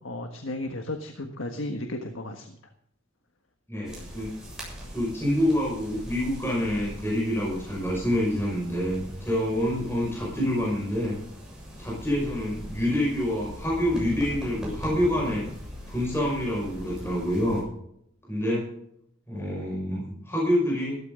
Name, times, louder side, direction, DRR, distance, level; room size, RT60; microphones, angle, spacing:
voice 1, 0.0-2.6, left 1 dB, 80° left, 5 dB, 1.5 m, -34 dB
voice 2, 3.7-4.3 4.9-11.2 11.8-15.4 15.9-17.6 18.3-18.6 19.3-21.0, equal, 10° left, -4 dB, 5.7 m, -27 dB
sound 1, 3.8-17.6, equal, 5° right, 7.4 m, -41 dB
15.5 x 14.0 x 3.9 m, 0.73 s
head